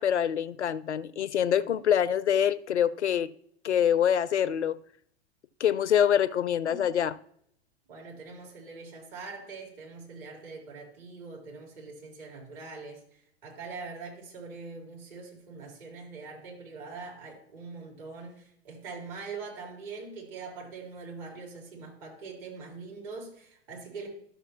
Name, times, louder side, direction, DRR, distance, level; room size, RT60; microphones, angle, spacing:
voice 1, 0.0-3.3 3.6-4.8 5.6-7.1, left 9 dB, 80° left, 0.5 m, -25 dB
voice 2, 7.9-24.1, right 4 dB, 50° right, 3.9 m, -43 dB
12.5 x 6.7 x 2.9 m
figure-of-eight pair, 100°, 34 cm